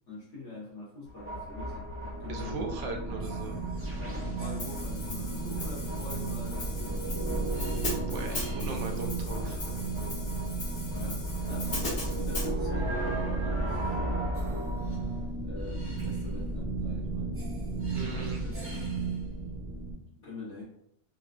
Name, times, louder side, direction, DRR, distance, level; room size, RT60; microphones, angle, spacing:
voice 1, 0.1-1.9 2.2-2.7 4.0-7.5 8.2-8.7 10.9-14.7 15.4-17.3 18.0-18.6 20.2-20.6, left 3 dB, 55° left, -8 dB, 1.3 m, -45 dB
sound 1, 1.1-19.9, right 2 dB, 15° right, 0.5 m, -33 dB
voice 2, 2.3-3.6 8.1-9.6 17.9-18.4, right 4 dB, 65° right, 3 dB, 0.8 m, -38 dB
Hi-hat, 4.6-12.5, left 2 dB, 85° left, 1.7 m, -39 dB
3.8 x 2.2 x 2.4 m, 0.73 s
omnidirectional pair, 1.5 m